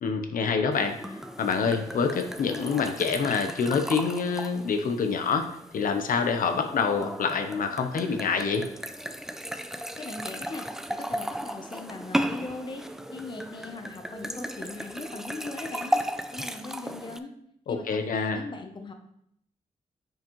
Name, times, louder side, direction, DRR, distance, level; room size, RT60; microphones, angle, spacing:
voice 1, 0.0-8.6 17.7-18.4, left 5 dB, 80° left, 6 dB, 0.7 m, -27 dB
sound 1, 0.7-17.2, equal, 5° right, 0.3 m, -35 dB
voice 2, 10.0-12.8 13.1-16.0 16.3-17.3 17.7-18.9, left 2 dB, 35° left, 5 dB, 0.7 m, -39 dB
8.9 x 5.2 x 3.0 m, 0.74 s
wide cardioid pair, 145°, 14 cm